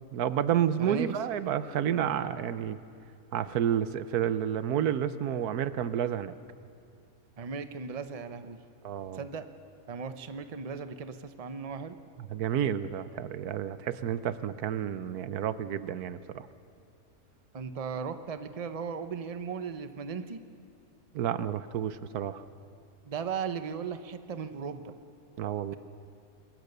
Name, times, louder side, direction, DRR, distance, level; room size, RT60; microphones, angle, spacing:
voice 1, 0.1-2.8 3.3-6.3 8.8-9.2 12.2-16.5 21.1-22.4 25.4-25.8, right 9 dB, 85° right, 14 dB, 1.3 m, -30 dB
voice 2, 0.8-1.2 7.4-8.6 9.1-9.5 9.9-12.0 17.5-20.4 23.1-25.0, right 6 dB, 30° right, 10 dB, 0.8 m, -37 dB
27.0 x 22.0 x 6.8 m, 2.5 s
omnidirectional pair, 1.6 m